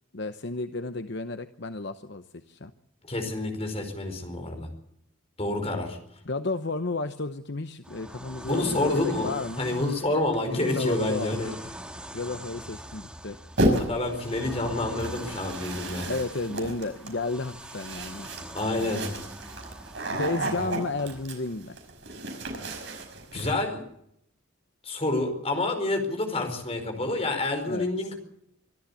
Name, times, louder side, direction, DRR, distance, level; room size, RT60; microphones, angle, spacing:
voice 1, 0.1-2.7 6.3-9.9 10.7-11.6 12.1-13.4 16.1-18.3 20.1-21.8 27.7-27.9, left 3 dB, 55° left, 9 dB, 0.9 m, -32 dB
voice 2, 3.0-4.7 5.4-6.0 8.5-11.5 13.9-16.1 18.5-19.1 23.3-23.8 24.8-28.1, left 2 dB, 30° left, 5 dB, 4.8 m, -28 dB
sound 1, 7.8-21.2, right 1 dB, 5° right, 2.1 m, -43 dB
sound 2, 13.6-14.1 15.0-23.5, right 1 dB, 60° right, 5.5 m, -32 dB
25.0 x 13.5 x 8.4 m, 0.77 s
head